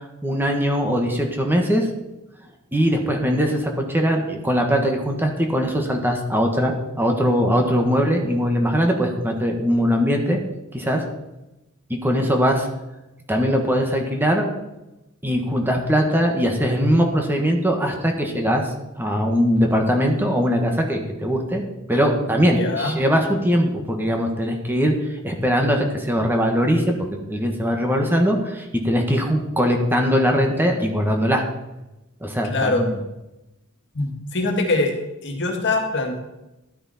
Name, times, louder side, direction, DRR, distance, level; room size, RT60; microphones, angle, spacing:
voice 1, 0.2-1.9 2.7-10.4 10.7-11.0 11.9-12.7 13.3-14.5 15.2-18.7 19.0-21.6 21.9-24.9 25.2-31.4 32.2-33.0, equal, 10° right, 2 dB, 1.5 m, -21 dB
voice 2, 22.6-22.9 32.4-32.9 33.9-34.9 35.2-36.2, left 2 dB, 55° left, 2 dB, 2.0 m, -23 dB
12.5 x 9.9 x 4.3 m, 0.95 s
head